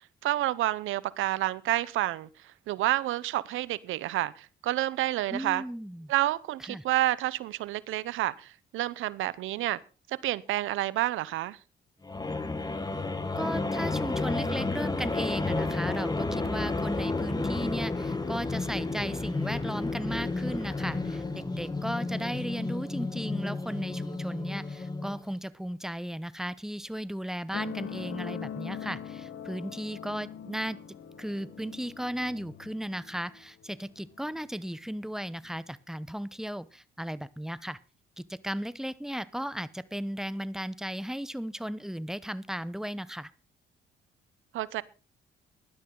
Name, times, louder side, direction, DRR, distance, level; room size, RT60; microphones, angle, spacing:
voice 1, 0.2-2.3 2.7-5.6 6.1-9.8 10.1-11.6 44.5-44.8, right 15 dB, 85° right, 19 dB, 0.8 m, -29 dB
voice 2, 5.3-6.1 6.6-6.8 13.4-30.8 31.2-37.8 38.2-43.3, equal, ahead, 16 dB, 0.8 m, -35 dB
sound 1, 12.0-25.3, left 3 dB, 20° left, 1.7 m, -31 dB
sound 2, 27.5-34.6 35.4-35.5, left 8 dB, 75° left, 1.4 m, -42 dB
16.0 x 11.5 x 3.9 m, 0.34 s
cardioid pair, 90°, 20 cm